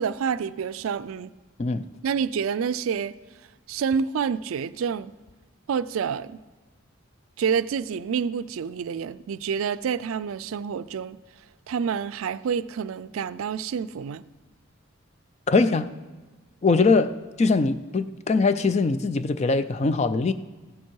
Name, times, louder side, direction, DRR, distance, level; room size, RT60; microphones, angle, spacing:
voice 1, 0.0-1.3 2.0-3.1 3.7-5.1 5.7-6.4 7.4-11.2 11.7-14.2, right 6 dB, 80° right, 0.4 m, -28 dB
voice 2, 15.5-15.9 16.6-20.3, left 3 dB, 30° left, 0.4 m, -22 dB
15.0 x 7.2 x 4.6 m
head